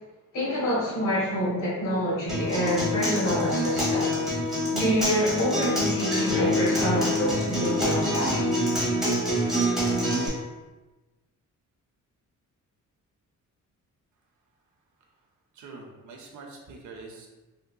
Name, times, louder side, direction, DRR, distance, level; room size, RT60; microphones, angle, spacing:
voice 1, 0.3-4.1 4.7-8.5, equal, 80° left, -6 dB, 1.5 m, -27 dB
Acoustic guitar, 2.3-10.3, equal, ahead, 1.0 m, -26 dB
voice 2, 15.6-17.3, right 3 dB, 70° right, 0 dB, 0.7 m, -44 dB
3.6 x 2.7 x 2.3 m, 1.2 s
wide cardioid pair, 175°, 31 cm